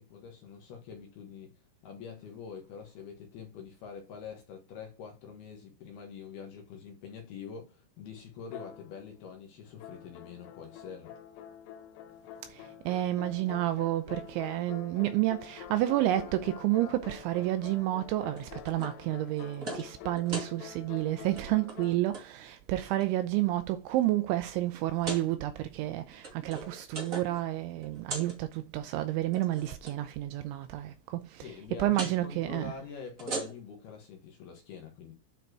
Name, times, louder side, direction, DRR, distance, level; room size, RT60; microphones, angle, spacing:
voice 1, 0.0-1.5 1.8-11.1 31.4-35.1, left 6 dB, 65° left, 2.8 m, -45 dB
sound 1, 8.5-9.3 9.8-22.0, left 9 dB, 90° left, 3.3 m, -46 dB
voice 2, 12.5-32.7, right 15 dB, 85° right, 2.8 m, -30 dB
sound 2, 18.4-19.0 19.3-19.9 20.2-20.5 21.2-21.4 21.7-22.2 22.9-23.4 24.0-24.1 24.9-25.3 26.0-27.4 27.7-28.4 29.2-29.9 31.9-32.2 33.0-33.8, right 2 dB, 55° right, 0.9 m, -39 dB
9.4 x 4.4 x 4.7 m
omnidirectional pair, 5.8 m